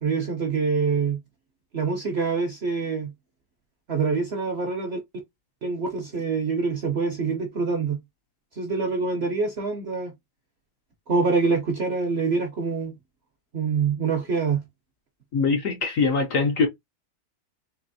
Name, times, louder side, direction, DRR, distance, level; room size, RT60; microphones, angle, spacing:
voice 1, 0.0-1.2 1.7-3.1 3.9-5.0 5.6-8.0 8.6-10.1 11.1-12.9 13.5-14.6, right 4 dB, 55° right, 0.7 m, -25 dB
voice 2, 15.3-16.7, left 4 dB, 60° left, 0.9 m, -22 dB
4.2 x 2.8 x 2.6 m
omnidirectional pair, 1.9 m